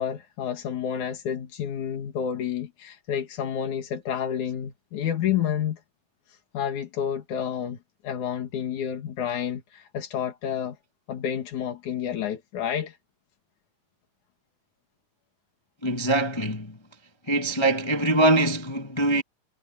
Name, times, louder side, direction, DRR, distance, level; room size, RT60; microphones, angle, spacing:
voice 1, 0.0-5.8 6.5-7.8 8.0-10.8 11.1-13.0, left 9 dB, 90° left, 3.5 m, -29 dB
voice 2, 15.8-16.8 17.3-19.2, right 2 dB, 35° left, 0.4 m, -23 dB
omnidirectional pair, 3.3 m